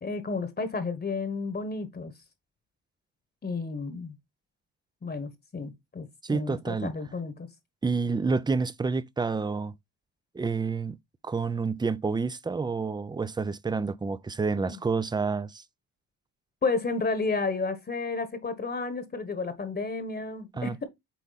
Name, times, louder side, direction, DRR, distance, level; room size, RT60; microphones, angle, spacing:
voice 1, 0.0-2.1 3.4-4.2 5.0-7.5 14.6-14.8 16.6-20.9, left 4 dB, 30° left, 1.3 m, -32 dB
voice 2, 6.2-6.9 7.8-9.7 10.3-11.0 11.2-15.6 20.6-20.8, right 4 dB, 15° right, 0.5 m, -29 dB
8.4 x 3.5 x 4.0 m
cardioid pair, 90°, 33 cm